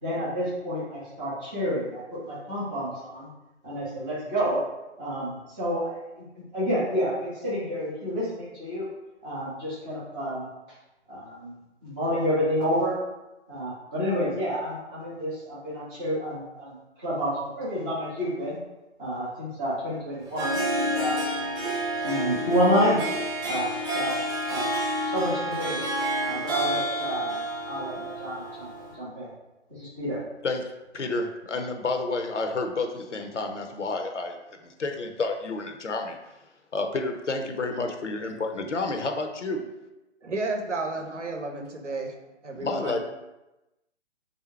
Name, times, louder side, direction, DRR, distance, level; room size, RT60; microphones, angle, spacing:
voice 1, 0.0-3.3 3.6-4.6 5.0-5.9 6.4-8.8 9.2-10.5 11.1-11.5 11.8-13.0 13.5-18.6 19.0-21.2 22.0-23.0 23.4-24.7 25.0-25.8 26.2-27.4 27.7-28.7 29.0-29.3 29.7-30.2, equal, 5° right, -11 dB, 0.5 m, -29 dB
Harp, 20.2-28.9, right 1 dB, 20° right, 0.9 m, -29 dB
voice 2, 30.4-34.4 34.6-36.2 36.7-39.6 42.6-43.0, left 3 dB, 75° left, 5 dB, 0.7 m, -30 dB
voice 3, 40.2-42.2 42.4-43.0, right 2 dB, 75° right, 3 dB, 0.8 m, -32 dB
3.6 x 2.7 x 4.4 m, 0.99 s
figure-of-eight pair, 135°, 36 cm